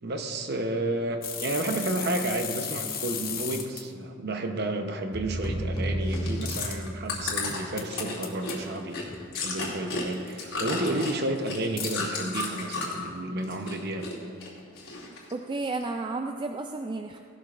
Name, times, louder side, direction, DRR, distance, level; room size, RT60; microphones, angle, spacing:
voice 1, 0.0-9.0 9.3-14.1, right 1 dB, 50° right, 5 dB, 0.9 m, -31 dB
sound 1, 1.2-3.8 6.5-6.8 7.8-8.5 10.1-10.3 11.8-12.0, left 8 dB, 45° left, 1.0 m, -35 dB
sound 2, 5.1-7.4, right 1 dB, 20° left, 1.8 m, -31 dB
Chewing mastication, 6.0-13.1 13.4-14.1 14.4-15.3 15.8-15.9, left 3 dB, 85° left, 2.6 m, -33 dB
voice 2, 15.3-17.2, right 3 dB, 25° right, 4 dB, 0.3 m, -32 dB
17.0 x 12.0 x 2.5 m, 2.2 s
head